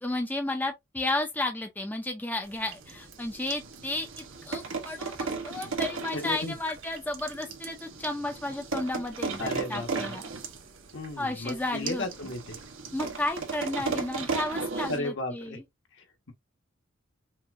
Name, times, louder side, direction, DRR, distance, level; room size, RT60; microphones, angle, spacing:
voice 1, 0.0-10.2 11.2-12.1 12.9-15.6, left 2 dB, 10° left, 0.6 m, -33 dB
sound 1, 2.4-15.0, right 4 dB, 90° right, 1.1 m, -36 dB
voice 2, 6.1-6.5 9.4-10.2 10.9-12.6 14.9-15.6 15.9-16.3, left 2 dB, 65° left, 1.5 m, -35 dB
5.6 x 2.6 x 2.6 m
head